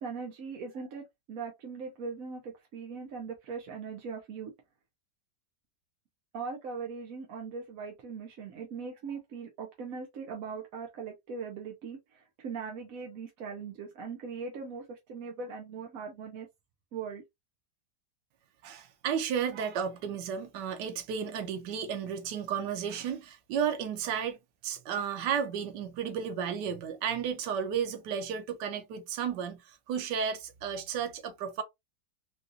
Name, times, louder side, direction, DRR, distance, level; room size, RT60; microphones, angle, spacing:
voice 1, 0.0-4.5 6.3-16.5 16.9-17.2, right 5 dB, 60° right, 1.0 m, -40 dB
voice 2, 18.6-24.4 24.6-31.6, right 7 dB, 85° right, 1.3 m, -33 dB
3.9 x 2.4 x 2.5 m
omnidirectional pair, 1.8 m